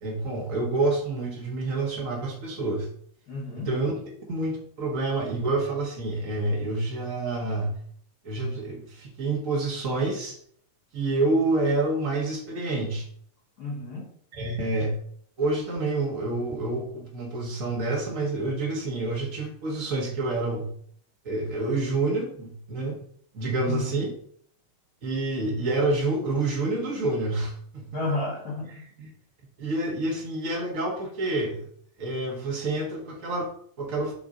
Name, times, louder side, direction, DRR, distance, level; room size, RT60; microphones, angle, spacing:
voice 1, 0.0-2.9 3.6-3.9 4.3-7.8 8.2-10.4 10.9-13.1 14.3-15.0 15.4-20.7 21.2-22.9 23.3-24.1 25.0-27.9 29.0-29.1 29.6-31.7 32.0-33.5 33.8-34.1, right 2 dB, 55° right, -1 dB, 0.8 m, -28 dB
voice 2, 3.3-3.7 13.6-14.1 23.6-23.9 27.9-28.8, left 2 dB, 50° left, -3 dB, 1.2 m, -31 dB
6.7 x 4.2 x 3.7 m, 0.62 s
omnidirectional pair, 3.3 m